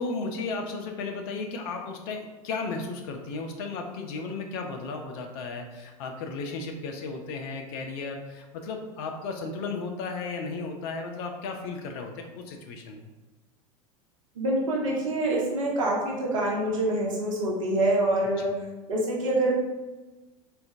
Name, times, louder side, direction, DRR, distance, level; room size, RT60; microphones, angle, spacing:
voice 1, 0.0-13.1, left 4 dB, 45° left, 3 dB, 0.4 m, -34 dB
voice 2, 14.4-18.5 18.9-19.5, right 1 dB, 65° right, -3 dB, 0.8 m, -26 dB
3.6 x 2.3 x 2.6 m, 1.2 s
figure-of-eight pair, 80°, 18 cm